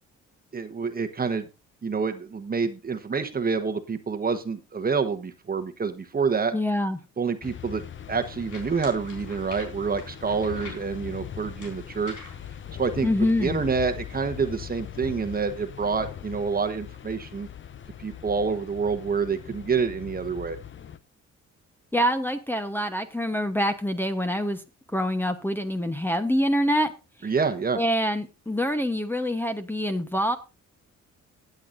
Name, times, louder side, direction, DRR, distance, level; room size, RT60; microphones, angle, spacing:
voice 1, 0.5-1.5 1.8-6.5 7.2-12.2 12.8-13.1 13.4-17.5 18.0-20.6 27.2-27.8, right 5 dB, 30° right, 7 dB, 1.1 m, -27 dB
voice 2, 6.5-7.0 13.0-13.6 21.9-24.6 24.9-26.9 27.2-27.3 27.7-30.4, equal, 5° left, 8 dB, 1.0 m, -25 dB
sound 1, 7.4-21.0, left 9 dB, 40° left, 0.7 m, -40 dB
sound 2, 7.9-13.2, left 3 dB, 80° left, 4.2 m, -47 dB
19.0 x 8.0 x 2.6 m, 0.27 s
cardioid pair, 90°, 30 cm